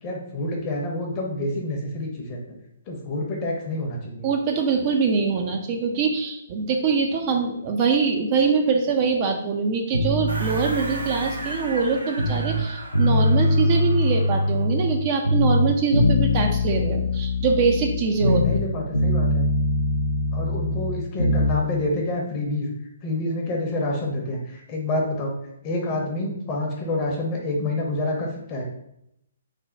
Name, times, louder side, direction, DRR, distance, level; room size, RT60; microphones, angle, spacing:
voice 1, 0.0-2.4 2.9-4.3 18.2-19.5 20.3-22.7 23.0-25.3 25.6-28.6, left 2 dB, 30° left, 0 dB, 0.8 m, -28 dB
voice 2, 4.2-18.4, right 5 dB, 35° right, 3 dB, 0.4 m, -23 dB
sound 1, 9.9-12.6 12.9-15.0 15.2-18.7 18.9-21.6, left 1 dB, 85° left, 0.5 m, -22 dB
sound 2, 10.3-14.7, right 1 dB, 80° right, 0.8 m, -36 dB
3.3 x 2.2 x 3.8 m, 0.78 s
figure-of-eight pair, 135°, 0 cm